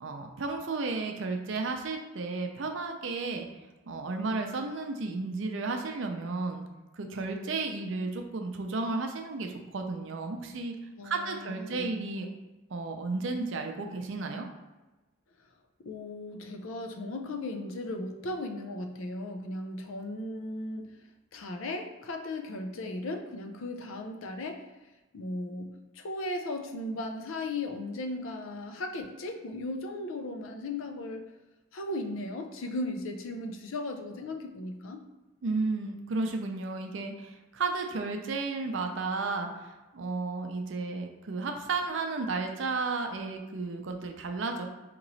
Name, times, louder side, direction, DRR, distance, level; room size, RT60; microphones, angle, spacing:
voice 1, 0.0-3.5 3.9-6.6 6.9-10.8 11.0-12.3 12.7-14.5 35.4-44.7, right 3 dB, 60° right, 4 dB, 0.5 m, -33 dB
voice 2, 11.0-11.9 15.8-20.9 21.3-24.7 25.1-31.2 31.7-35.0, left 2 dB, 70° left, 5 dB, 0.4 m, -36 dB
3.0 x 2.9 x 3.9 m, 1.1 s
head